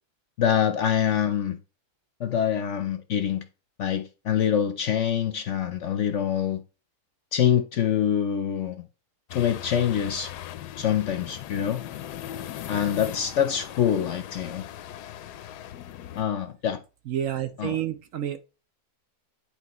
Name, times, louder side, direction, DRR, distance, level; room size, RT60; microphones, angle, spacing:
voice 1, 0.4-1.6 2.2-3.5 3.8-6.6 7.3-8.8 9.3-10.3 10.8-11.8 12.7-14.6 16.2-16.8 17.6-17.8, left 9 dB, 60° left, 0.8 m, -25 dB
sound 1, 9.3-16.2, left 12 dB, 85° left, 1.2 m, -39 dB
voice 2, 17.1-18.4, right 10 dB, 65° right, 0.9 m, -29 dB
10.0 x 4.4 x 3.0 m
omnidirectional pair, 1.7 m